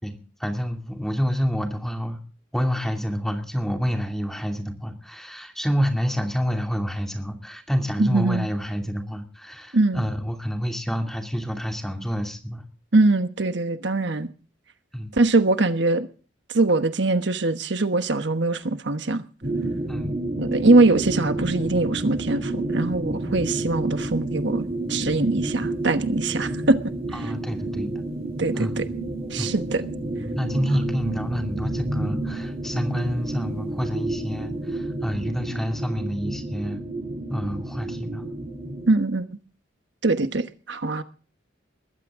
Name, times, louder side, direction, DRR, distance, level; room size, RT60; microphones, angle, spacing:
voice 1, 0.0-2.2 2.5-12.6 14.9-15.2 19.9-20.1 27.1-27.9 28.6-28.8 29.4-29.5 30.3-36.8 37.3-38.2, equal, ahead, 2.6 m, -28 dB
voice 2, 8.0-8.5 9.7-10.0 12.9-14.3 15.1-16.1 16.5-19.2 20.4-27.3 28.4-28.9 29.3-29.8 38.9-39.4 40.0-41.0, right 2 dB, 65° right, 1.2 m, -22 dB
sound 1, 19.4-38.9, right 2 dB, 30° right, 2.5 m, -30 dB
21.0 x 15.0 x 3.7 m
head